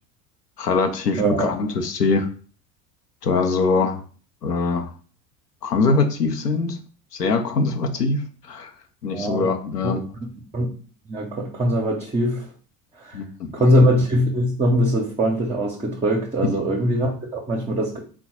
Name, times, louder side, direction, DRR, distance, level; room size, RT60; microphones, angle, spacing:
voice 1, 0.6-2.3 3.2-4.0 4.4-4.9 5.6-6.8 7.1-8.2 8.5-8.7 9.0-10.0 13.1-13.7 16.4-16.5, left 4 dB, 85° left, 6 dB, 0.7 m, -22 dB
voice 2, 1.2-1.5 9.1-9.5 9.8-10.3 10.5-10.7 11.1-12.5 13.0-13.2 13.5-18.0, equal, 15° right, 0 dB, 0.6 m, -22 dB
3.7 x 2.2 x 4.2 m, 0.40 s
figure-of-eight pair, 70°, 47 cm